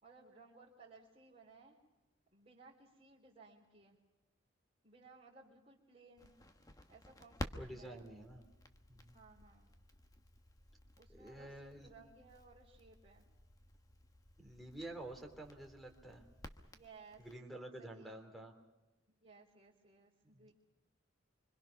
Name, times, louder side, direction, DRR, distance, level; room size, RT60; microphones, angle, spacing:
voice 1, 0.0-1.8 2.3-4.0 4.8-6.3 6.9-8.1 9.1-9.7 11.0-13.3 16.7-18.2 19.1-20.5, right 3 dB, 30° right, -6 dB, 3.5 m, -61 dB
Crackle, 6.2-17.4, left 1 dB, 15° left, 1.2 m, -53 dB
voice 2, 7.6-8.4 8.9-9.2 11.1-11.9 14.4-16.2 17.2-18.5 20.4-20.5, right 1 dB, ahead, 4 dB, 3.2 m, -49 dB
26.0 x 25.5 x 5.9 m, 1.1 s
head